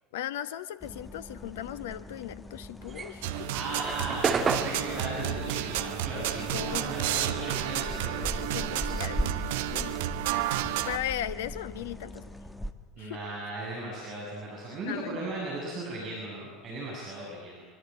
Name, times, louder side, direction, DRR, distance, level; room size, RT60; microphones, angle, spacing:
voice 1, 0.1-3.5 6.5-6.9 7.1-7.3 8.2-9.3 9.7-10.4 10.8-12.2 13.0-13.2 14.9-15.2, left 12 dB, 65° left, 15 dB, 1.2 m, -37 dB
sound 1, 0.8-12.7, equal, 10° left, 2.0 m, -40 dB
sound 2, 2.8-7.5 7.8-9.8, right 5 dB, 25° right, 2.3 m, -33 dB
sound 3, 3.2-11.0, right 12 dB, 60° right, 1.2 m, -31 dB
voice 2, 3.5-9.2 13.0-17.7, right 2 dB, 40° right, -3 dB, 7.5 m, -37 dB
25.0 x 24.0 x 9.2 m, 1.2 s
figure-of-eight pair, 70°, 0 cm